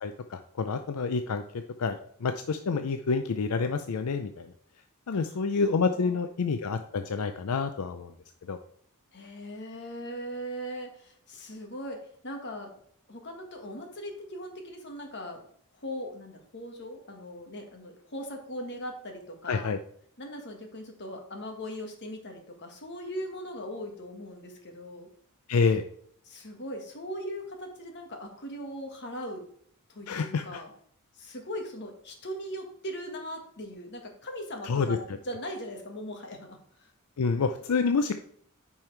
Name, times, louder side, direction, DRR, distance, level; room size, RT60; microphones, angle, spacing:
voice 1, 0.0-1.4 1.8-4.5 5.1-8.1 8.5-8.6 19.5-19.8 25.5-25.8 30.1-30.4 34.7-35.0 37.2-38.2, left 4 dB, 80° left, 8 dB, 0.5 m, -28 dB
voice 2, 5.1-6.2 9.1-12.7 13.1-15.4 15.7-19.7 20.2-25.1 26.2-29.4 29.9-30.7 31.1-36.9, equal, 50° left, 3 dB, 1.6 m, -39 dB
9.0 x 5.5 x 3.3 m, 0.63 s
head